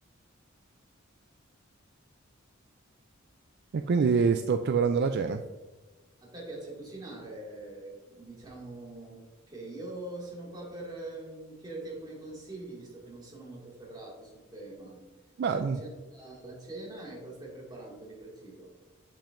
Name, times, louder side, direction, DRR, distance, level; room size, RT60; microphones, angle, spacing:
voice 1, 3.7-5.4 15.4-15.8, right 5 dB, 55° right, 7 dB, 0.3 m, -25 dB
voice 2, 6.2-9.2 9.5-15.0 15.5-18.7, right 2 dB, 20° right, -4 dB, 2.1 m, -43 dB
7.5 x 7.2 x 2.6 m, 1.2 s
head